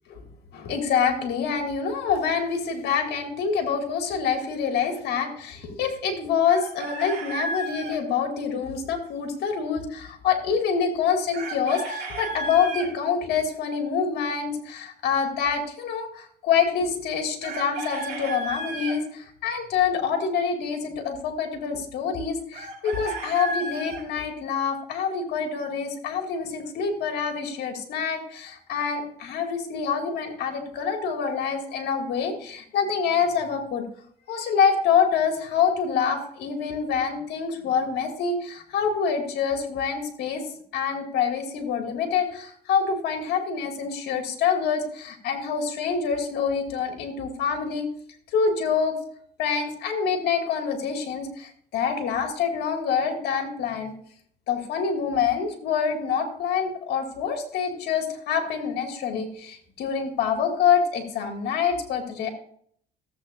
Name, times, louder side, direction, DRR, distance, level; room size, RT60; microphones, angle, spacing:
voice 1, 0.5-33.8 34.3-40.4 40.7-47.9 48.3-48.9 49.4-53.9 54.5-62.3, left 6 dB, 75° left, 4 dB, 2.1 m, -26 dB
Chicken rooster, 6.5-8.0 11.3-12.9 17.4-19.0 22.5-24.0, right 2 dB, 70° right, 4.1 m, -33 dB
14.5 x 7.9 x 2.5 m, 0.63 s
cardioid pair, 110°, 17 cm